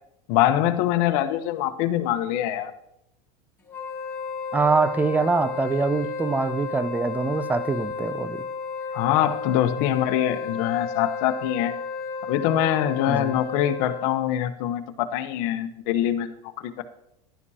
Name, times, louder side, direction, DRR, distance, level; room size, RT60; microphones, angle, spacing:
voice 1, 0.3-2.7 8.9-11.7 12.3-16.3 16.6-16.8, left 12 dB, 60° left, 1.1 m, -24 dB
Wind instrument woodwind instrument, 3.7-14.2, left 5 dB, 10° left, 2.7 m, -33 dB
voice 2, 4.5-8.5 13.1-13.4, right 4 dB, 10° right, 0.5 m, -24 dB
15.0 x 11.5 x 2.9 m
supercardioid pair, 140°, 19 cm